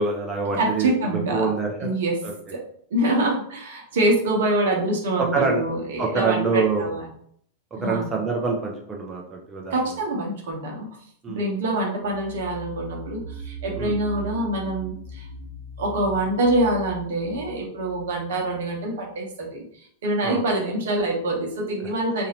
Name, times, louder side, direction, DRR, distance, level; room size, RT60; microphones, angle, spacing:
voice 1, 0.0-2.0 2.2-2.3 5.3-5.6 6.0-6.8 7.8-9.7 11.2-11.4 13.8-14.0 20.2-20.4, right 4 dB, 20° right, -1 dB, 0.6 m, -25 dB
voice 2, 0.6-1.5 1.8-2.2 2.5-2.6 2.9-7.0 7.7-8.1 9.7-10.9 11.3-15.3 15.8-22.3, right 1 dB, 60° right, 1 dB, 1.0 m, -25 dB
sound 1, 12.0-18.6, right 2 dB, 80° left, 0.7 m, -39 dB
3.9 x 2.6 x 2.9 m, 0.63 s
figure-of-eight pair, 90°, 0 cm